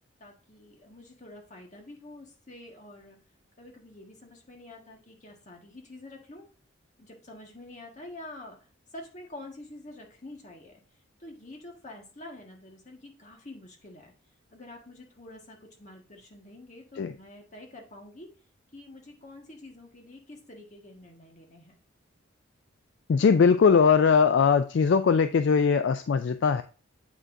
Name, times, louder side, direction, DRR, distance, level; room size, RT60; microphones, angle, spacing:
voice 1, 0.2-3.2 3.6-6.4 7.0-8.6 8.9-10.8 11.2-14.1 14.5-18.3 18.7-21.7, left 1 dB, 35° left, 1 dB, 1.5 m, -47 dB
voice 2, 23.1-26.6, left 6 dB, 60° left, 10 dB, 0.3 m, -21 dB
8.0 x 6.1 x 2.6 m, 0.38 s
head